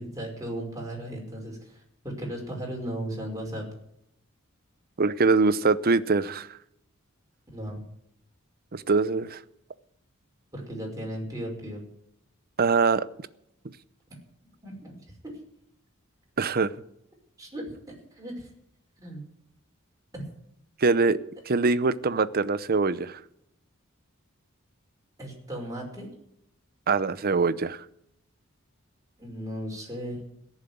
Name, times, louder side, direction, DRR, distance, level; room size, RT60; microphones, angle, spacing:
voice 1, 0.0-3.6 7.5-7.8 10.5-11.8 14.6-15.0 15.2-15.3 17.4-17.7 18.1-18.5 19.0-19.2 20.1-20.2 25.2-26.1 29.2-30.2, right 1 dB, 15° right, -1 dB, 5.5 m, -36 dB
voice 2, 5.0-6.5 8.7-9.4 12.6-13.0 16.4-16.7 20.8-21.2 21.5-23.2 26.9-27.8, right 4 dB, 45° right, 16 dB, 0.7 m, -23 dB
17.0 x 7.4 x 9.4 m, 0.77 s
head